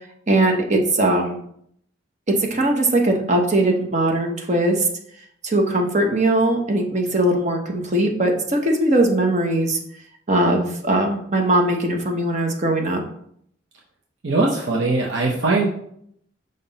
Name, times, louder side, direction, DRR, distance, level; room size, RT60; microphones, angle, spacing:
voice 1, 0.3-1.4 2.3-4.9 5.4-9.8 10.3-13.0, right 1 dB, 35° right, 3 dB, 0.9 m, -20 dB
voice 2, 14.2-15.7, right 3 dB, 60° right, -1 dB, 0.8 m, -20 dB
5.8 x 5.4 x 4.0 m, 0.69 s
head